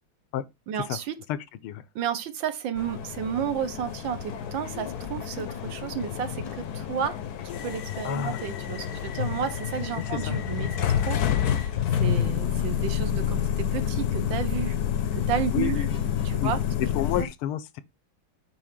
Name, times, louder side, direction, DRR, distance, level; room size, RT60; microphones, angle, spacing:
voice 1, 0.7-1.2 1.9-7.2 7.6-14.8 15.1-15.8 16.2-16.6 17.2-17.3, right 8 dB, 65° right, 1.5 m, -32 dB
sound 1, 2.8-17.2, left 9 dB, 60° left, 1.0 m, -29 dB
Sliding door, 3.7-16.4, left 4 dB, 30° left, 0.6 m, -48 dB
voice 2, 8.0-8.4 10.0-10.4 15.5-16.0 16.4-16.5 16.9-17.8, left 12 dB, 80° left, 1.6 m, -30 dB
8.6 x 2.9 x 5.9 m
omnidirectional pair, 2.4 m